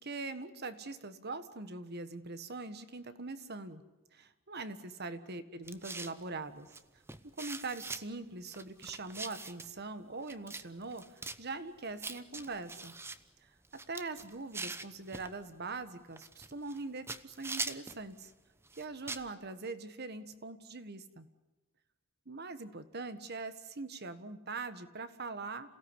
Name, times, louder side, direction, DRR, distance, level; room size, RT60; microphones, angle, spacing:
voice 1, 0.0-3.8 4.1-6.7 7.4-12.9 13.4-13.5 13.9-18.3 18.7-21.3 22.2-25.7, right 3 dB, 55° right, 11 dB, 1.6 m, -42 dB
sound 1, 5.6-6.2 6.7-6.8 7.1-8.0 8.5-9.7 10.3-10.6 10.9-11.4 12.0-13.2 13.6-15.3 16.2-16.8 17.1-18.0 18.7-19.3, right 3 dB, 10° right, 0.9 m, -42 dB
27.5 x 17.0 x 9.9 m, 1.1 s
head